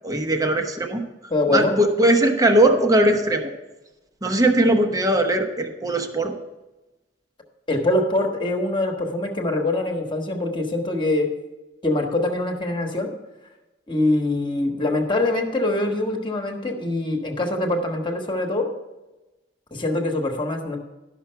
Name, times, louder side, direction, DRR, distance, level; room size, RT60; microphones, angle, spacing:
voice 1, 0.0-1.0 1.5-3.5 4.2-6.4, right 1 dB, 20° right, 5 dB, 1.0 m, -19 dB
voice 2, 1.3-1.7 7.7-11.3 11.8-13.1 13.9-18.7 19.7-20.8, left 2 dB, 25° left, 3 dB, 1.3 m, -23 dB
11.5 x 6.0 x 5.6 m, 1.1 s
head